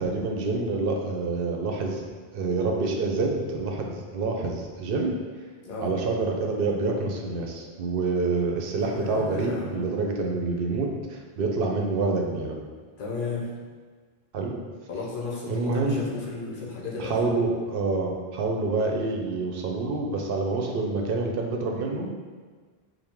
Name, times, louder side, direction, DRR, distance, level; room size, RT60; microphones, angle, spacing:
voice 1, 0.0-2.1 2.3-5.2 5.8-12.5 14.3-14.5 15.5-16.1 17.0-22.1, right 3 dB, 65° right, 1 dB, 0.7 m, -27 dB
voice 2, 8.8-10.0 13.0-13.5 14.9-17.3, left 3 dB, 60° left, -4 dB, 0.9 m, -34 dB
4.5 x 2.1 x 3.5 m, 1.5 s
omnidirectional pair, 1.1 m